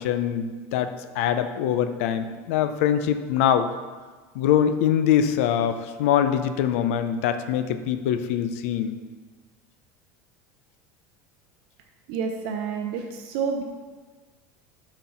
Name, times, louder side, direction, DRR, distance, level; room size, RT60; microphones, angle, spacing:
voice 1, 0.0-3.7 4.3-8.9, left 9 dB, 85° left, 9 dB, 0.6 m, -23 dB
voice 2, 12.1-13.6, right 6 dB, 65° right, 3 dB, 0.7 m, -29 dB
7.5 x 4.5 x 5.5 m, 1.4 s
cardioid pair, 155°, 7 cm